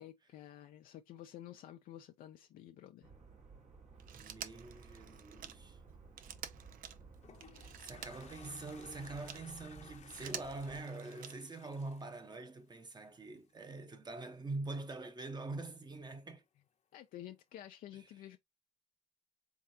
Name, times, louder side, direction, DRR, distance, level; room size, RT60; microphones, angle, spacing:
voice 1, 0.0-3.1 16.9-18.4, left 12 dB, 85° left, 0.4 m, -51 dB
sound 1, 3.0-10.8, right 4 dB, 60° right, 1.5 m, -57 dB
Telephone, 4.0-9.5 9.9-11.6 12.9-13.0, right 9 dB, 80° right, 0.6 m, -50 dB
voice 2, 4.1-5.8 7.8-16.4 17.9-18.1, right 2 dB, 30° right, 1.0 m, -44 dB
Toilet flush, 6.9-13.2, left 7 dB, 55° left, 0.8 m, -59 dB
3.7 x 3.5 x 2.7 m
cardioid pair, 80°, 14 cm